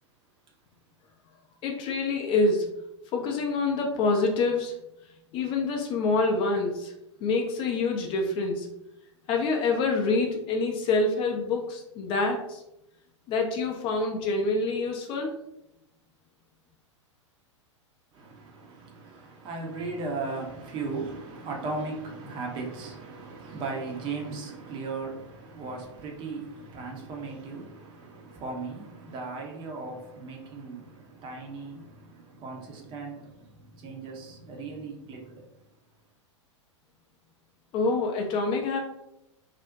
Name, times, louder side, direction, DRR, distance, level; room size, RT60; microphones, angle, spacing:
voice 1, 1.6-2.7 3.1-4.7 5.3-6.9 7.2-8.7 9.3-12.6 13.3-15.4 37.7-38.8, left 3 dB, 35° left, 0.4 m, -26 dB
voice 2, 18.1-35.5, right 3 dB, 30° right, 0.6 m, -37 dB
2.4 x 2.0 x 2.5 m
figure-of-eight pair, 100°, 16 cm